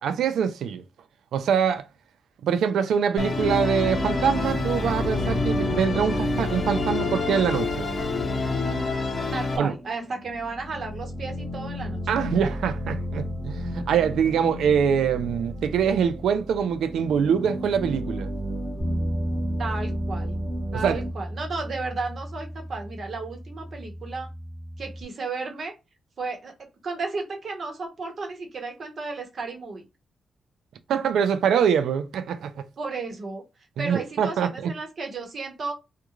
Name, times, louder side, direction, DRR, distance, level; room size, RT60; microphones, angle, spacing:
voice 1, 0.0-0.8 1.3-1.8 2.4-7.9 9.6-9.7 12.1-18.3 20.8-21.0 30.9-32.5 33.8-34.7, right 7 dB, 85° right, 0.4 m, -24 dB
Musical instrument, 3.2-9.6, left 3 dB, 45° left, 0.8 m, -27 dB
sound 1, 3.8-21.1, right 1 dB, 35° right, 1.1 m, -34 dB
voice 2, 9.3-12.0 19.6-20.4 20.7-24.3 24.8-25.7 26.2-26.5 26.8-29.8 32.8-33.4 33.8-35.7, right 3 dB, 60° right, 1.0 m, -33 dB
Bass guitar, 18.8-25.0, equal, ahead, 1.1 m, -33 dB
2.4 x 2.2 x 2.9 m
cardioid pair, 70°, 0 cm